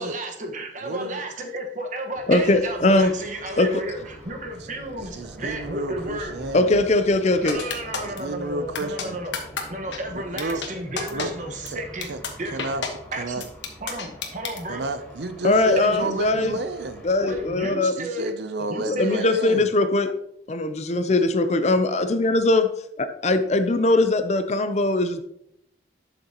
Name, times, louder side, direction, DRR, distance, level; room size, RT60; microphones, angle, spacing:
voice 1, 0.0-6.3 7.4-9.3 9.7-12.1 12.4-12.6 13.1-13.4 13.8-14.8 15.8-16.1 17.2-18.3 18.7-19.3, right 1 dB, 45° right, 3 dB, 1.4 m, -33 dB
voice 2, 0.8-1.2 5.0-6.8 8.0-9.2 10.1-10.6 11.1-11.3 11.6-11.8 12.1-12.2 12.5-12.8 13.2-13.4 14.7-17.0 18.0-19.7 21.1-21.2, right 2 dB, 70° right, 10 dB, 0.6 m, -31 dB
sound 1, 2.1-17.7, right 1 dB, 5° left, 3.8 m, -44 dB
voice 3, 2.3-3.1 3.6-3.8 6.5-7.6 15.4-16.6 17.0-17.9 18.6-20.1 20.5-22.7 23.0-25.2, left 2 dB, 40° left, 10 dB, 0.6 m, -21 dB
sound 2, 7.5-8.2 8.7-9.0 9.3-9.6 9.9-10.0 10.4-10.7 11.0-11.3 11.7-11.8 12.0-12.3 12.6-12.9 13.4-14.6, left 5 dB, 80° left, 1.3 m, -29 dB
11.5 x 6.6 x 2.9 m, 0.74 s
head